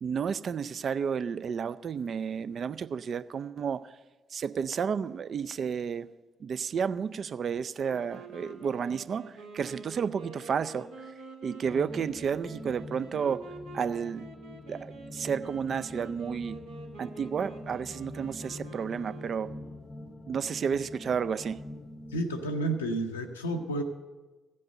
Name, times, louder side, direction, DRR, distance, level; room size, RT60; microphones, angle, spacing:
voice 1, 0.0-3.9 4.3-6.1 6.4-10.9 11.4-13.5 13.7-14.3 14.7-16.6 17.0-19.5 20.3-21.6, right 6 dB, 50° right, 14 dB, 0.4 m, -31 dB
sound 1, 7.8-19.7, right 3 dB, 70° right, 1.3 m, -47 dB
sound 2, 11.6-22.2, left 1 dB, 30° left, 0.7 m, -45 dB
voice 2, 22.1-23.8, right 1 dB, 80° left, 3 dB, 0.6 m, -31 dB
15.0 x 5.4 x 7.7 m, 1.2 s
figure-of-eight pair, 40°, 0 cm